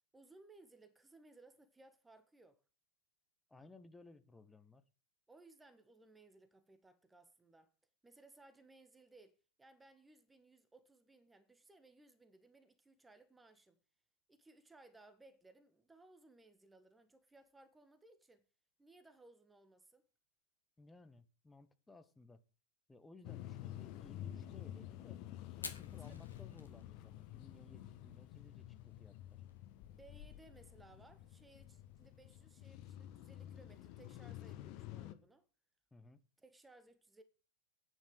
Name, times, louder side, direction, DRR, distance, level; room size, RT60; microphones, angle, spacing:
voice 1, 0.1-2.6 5.3-7.7 8.0-13.8 14.3-18.4 18.8-20.0 25.9-26.2 29.9-35.5 36.4-37.2, right 2 dB, 10° right, 1.4 m, -63 dB
voice 2, 3.5-4.8 20.8-22.4 22.9-25.2 25.5-29.4 35.9-36.2, left 2 dB, 10° left, 1.2 m, -60 dB
sound 1, 23.2-35.1, left 12 dB, 40° left, 1.3 m, -50 dB
Fire, 25.5-34.7, left 4 dB, 75° left, 2.2 m, -57 dB
10.5 x 9.6 x 6.4 m
figure-of-eight pair, 95°, 0 cm